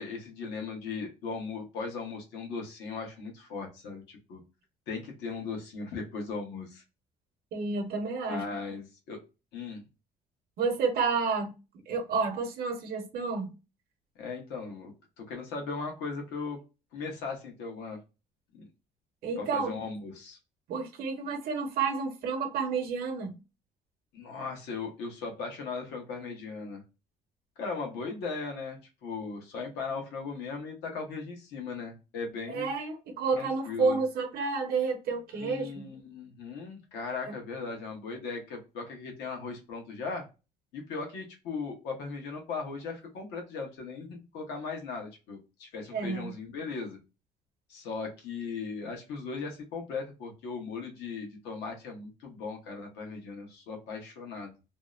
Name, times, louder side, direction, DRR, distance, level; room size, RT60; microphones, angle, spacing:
voice 1, 0.0-4.4 4.9-6.8 8.3-9.2 9.5-9.8 14.2-14.9 15.2-16.6 16.9-18.0 19.4-20.4 24.1-26.8 27.6-32.7 33.3-34.0 35.4-40.3 40.7-47.0 47.7-54.5, left 4 dB, 90° left, 1.0 m, -38 dB
voice 2, 7.5-8.4 10.6-11.5 11.9-13.5 19.2-19.7 20.7-23.4 32.5-35.9 45.9-46.3, right 4 dB, 65° right, 0.8 m, -30 dB
2.7 x 2.0 x 2.3 m
cardioid pair, 110°, 17 cm